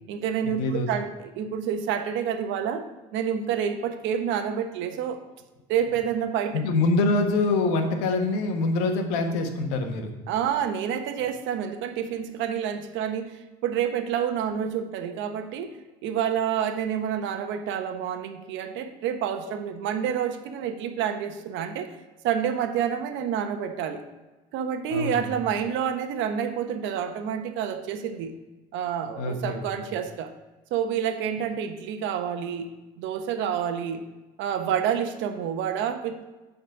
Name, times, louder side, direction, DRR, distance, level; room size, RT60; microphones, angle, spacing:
voice 1, 0.1-2.9 3.1-5.2 5.7-6.6 10.3-15.8 16.0-22.0 22.2-24.0 24.5-28.3 28.7-30.3 30.7-32.7 33.0-34.0 34.4-36.2, right 8 dB, 70° right, 8 dB, 1.0 m, -28 dB
voice 2, 0.6-0.9 6.5-10.1 24.9-25.3 29.2-29.8, left 3 dB, 80° left, 5 dB, 1.3 m, -25 dB
9.1 x 4.2 x 6.0 m, 1.2 s
hypercardioid pair, 70°, 20 cm